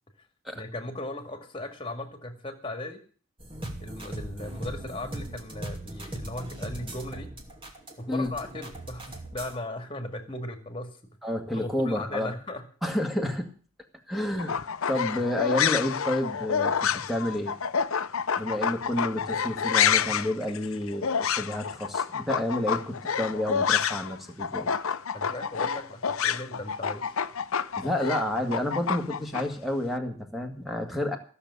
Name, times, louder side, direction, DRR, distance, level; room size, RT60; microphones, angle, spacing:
voice 1, 0.5-3.0 3.8-7.3 8.0-11.0 11.5-12.6 25.1-27.2, left 1 dB, 25° left, 7 dB, 2.2 m, -37 dB
sound 1, 3.4-9.6, right 1 dB, 25° right, 2.6 m, -39 dB
voice 2, 11.2-12.3 12.8-13.5 14.1-14.6 14.9-17.5 18.4-24.7 27.8-31.2, left 1 dB, ahead, 4 dB, 2.0 m, -30 dB
sound 2, 14.4-24.1 24.4-29.4, left 7 dB, 75° left, 0.7 m, -28 dB
15.5 x 7.0 x 9.5 m, 0.42 s
head